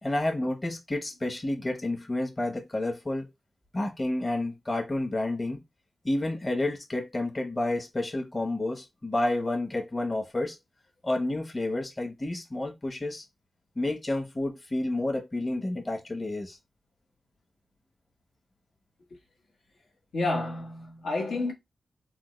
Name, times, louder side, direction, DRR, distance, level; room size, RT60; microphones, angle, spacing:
voice 1, 0.0-3.3 3.7-5.6 6.0-10.6 11.0-13.2 13.8-16.6, left 2 dB, 30° left, 0.9 m, -30 dB
voice 2, 20.1-21.5, left 2 dB, 85° left, 1.1 m, -29 dB
3.5 x 2.1 x 3.1 m
cardioid pair, 65°, 0 cm